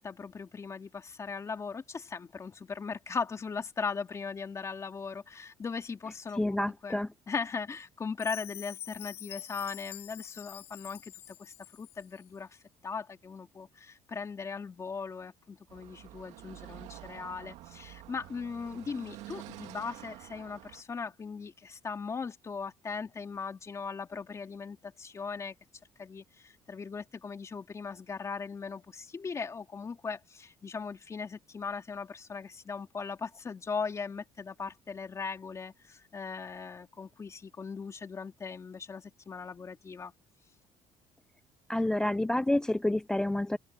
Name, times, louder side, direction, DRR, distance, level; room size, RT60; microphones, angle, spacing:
voice 1, 0.0-25.5 26.0-40.1, left 5 dB, 25° left, 3.2 m, -39 dB
voice 2, 6.4-7.1 41.7-43.6, left 1 dB, 5° left, 0.3 m, -28 dB
Chime, 8.2-12.3, left 13 dB, 65° left, 6.0 m, -46 dB
Car passing by / Traffic noise roadway noise, 15.7-20.8, right 15 dB, 90° right, 2.0 m, -48 dB
cardioid pair, 135°, 11 cm